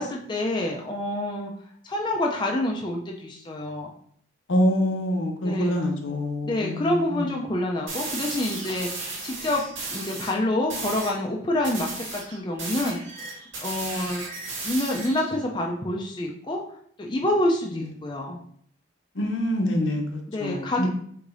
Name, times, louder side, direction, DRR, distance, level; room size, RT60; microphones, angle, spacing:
voice 1, 0.0-1.5 1.8-3.9 5.4-5.8 6.4-13.0 13.6-14.3 14.6-16.6 17.0-18.4 20.3-20.9, left 1 dB, 25° left, 0 dB, 0.4 m, -27 dB
voice 2, 4.5-7.4 17.7-17.9 19.1-20.9, equal, 80° left, 3 dB, 0.8 m, -26 dB
sound 1, 7.9-10.3 10.7-11.2 11.6-15.3, right 3 dB, 80° right, 1.6 m, -35 dB
4.8 x 3.6 x 2.6 m, 0.64 s
head